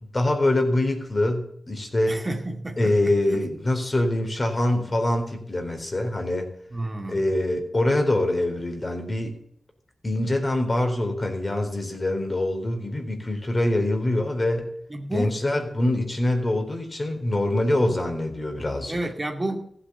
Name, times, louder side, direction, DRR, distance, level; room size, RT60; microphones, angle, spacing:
voice 1, 0.1-2.2 2.8-6.5 7.1-9.4 10.0-14.7 15.1-19.0, left 1 dB, 35° left, 4 dB, 4.1 m, -24 dB
voice 2, 2.1-3.4 6.7-7.2 14.9-15.3 15.7-15.8 18.9-19.7, right 1 dB, 30° right, 3 dB, 2.4 m, -31 dB
15.0 x 8.7 x 7.0 m, 0.68 s
cardioid pair, 50°, 0 cm